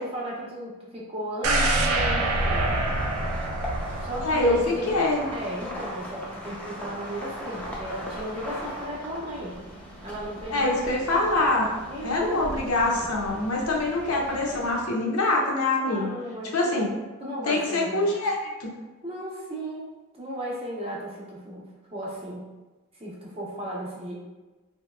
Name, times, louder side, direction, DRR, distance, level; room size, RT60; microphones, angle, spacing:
voice 1, 0.0-2.7 3.7-9.6 10.0-10.9 11.9-12.5 15.8-16.9 17.2-18.1 19.0-21.7 21.9-22.5 22.9-24.1, equal, 25° right, -5 dB, 0.7 m, -35 dB
sound 1, 1.4-5.4 5.8-5.9, right 2 dB, 75° right, 0.4 m, -26 dB
sound 2, 2.2-14.8, equal, 5° left, 0.5 m, -39 dB
voice 2, 4.2-4.6 4.9-5.2 10.5-11.7 12.0-16.1 16.5-16.9 17.4-18.7, left 2 dB, 80° left, -2 dB, 0.7 m, -24 dB
3.2 x 2.8 x 2.2 m, 1.2 s
head